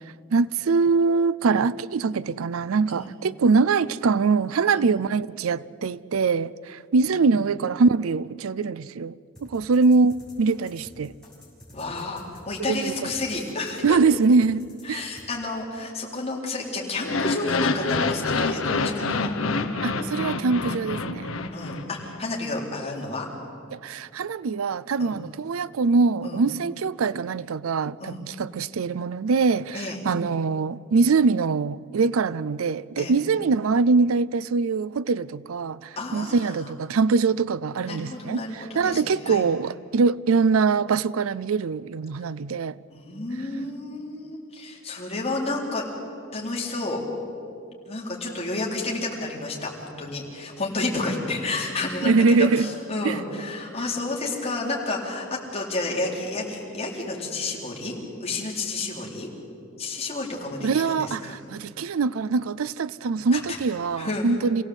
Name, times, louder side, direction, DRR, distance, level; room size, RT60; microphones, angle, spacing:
voice 1, 0.3-11.1 12.7-13.1 13.8-15.0 19.8-21.3 23.7-42.8 52.0-52.7 53.0-53.2 60.6-64.6, right 4 dB, 90° right, 0.5 m, -23 dB
sound 1, 9.4-15.3, left 1 dB, 5° left, 6.0 m, -49 dB
voice 2, 11.7-14.0 14.9-19.3 21.5-23.3 25.0-25.1 26.2-26.4 28.0-28.2 29.7-30.0 33.0-33.1 36.0-36.5 37.8-39.4 42.9-45.8 46.3-47.0 47.9-55.3 55.5-57.9 58.2-59.3 59.8-61.4 63.3-63.6 64.0-64.4, left 2 dB, 30° left, 4.1 m, -31 dB
sound 2, 17.0-22.2, left 3 dB, 80° left, 1.1 m, -27 dB
27.5 x 17.0 x 8.1 m
head